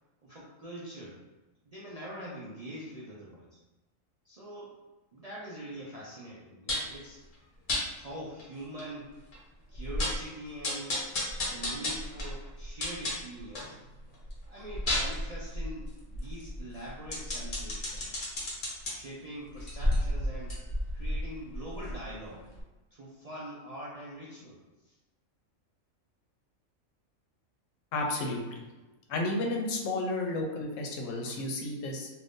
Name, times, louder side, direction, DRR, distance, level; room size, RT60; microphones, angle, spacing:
voice 1, 0.2-1.2 1.6-3.6 4.2-4.8 5.1-7.2 7.9-9.1 9.7-11.0 11.4-13.8 14.5-18.3 18.9-20.6 20.9-22.5 22.9-24.6 24.9-25.0, right 1 dB, 50° right, -7 dB, 0.4 m, -43 dB
sound 1, 6.7-7.0 7.7-7.8 8.4-8.5 8.8-8.9 9.3-9.4 9.7-10.3 10.6-13.7 14.1-18.9 19.5-22.2 22.6-22.7, left 1 dB, 45° left, 0.8 m, -32 dB
voice 2, 27.9-28.4 29.1-32.1, left 2 dB, 75° left, 1 dB, 0.9 m, -32 dB
2.6 x 2.6 x 3.5 m, 1.1 s
omnidirectional pair, 1.4 m